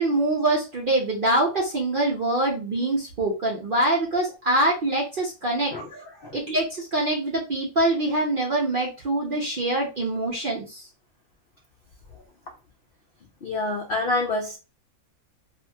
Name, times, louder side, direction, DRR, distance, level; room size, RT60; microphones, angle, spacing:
voice 1, 0.0-5.7 6.3-10.9, right 2 dB, 50° right, -3 dB, 0.6 m, -24 dB
voice 2, 5.7-6.4 13.4-14.6, left 2 dB, 65° left, 0 dB, 0.5 m, -28 dB
2.8 x 2.7 x 2.2 m, 0.30 s
omnidirectional pair, 1.6 m